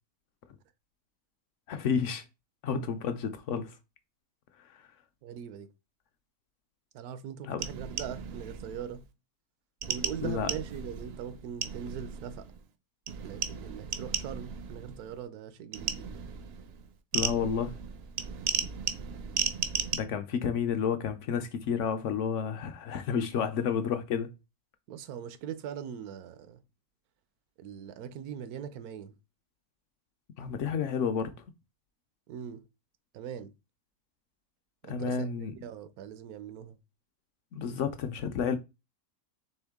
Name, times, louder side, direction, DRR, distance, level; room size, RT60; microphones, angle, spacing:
voice 1, 1.7-2.2 2.6-3.8 4.6-4.9 7.4-7.6 10.2-10.5 17.1-17.8 19.9-24.3 30.4-31.3 34.9-35.5 37.5-38.6, left 7 dB, 65° left, 0.8 m, -31 dB
voice 2, 5.2-5.7 6.9-9.0 9.9-12.5 13.2-16.2 24.9-26.6 27.6-29.1 32.3-32.6 33.1-33.5 34.8-36.8, right 8 dB, 80° right, 1.1 m, -41 dB
sound 1, 7.6-9.0 9.8-12.7 13.1-15.2 15.7-20.0, right 7 dB, 60° right, 0.6 m, -35 dB
4.4 x 3.4 x 3.5 m
omnidirectional pair, 1.6 m